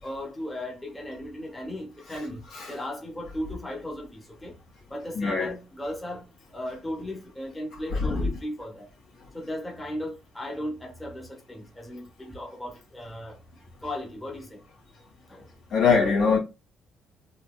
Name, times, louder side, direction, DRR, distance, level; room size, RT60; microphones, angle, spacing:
voice 1, 0.0-2.4 2.7-4.6 4.9-8.9 9.3-13.4 13.8-14.6 15.3-15.5, left 1 dB, 10° left, 1.0 m, -36 dB
voice 2, 5.1-5.5 7.9-8.3 15.7-16.4, left 5 dB, 70° left, 1.8 m, -23 dB
4.1 x 2.8 x 2.3 m
cardioid pair, 125°, 0 cm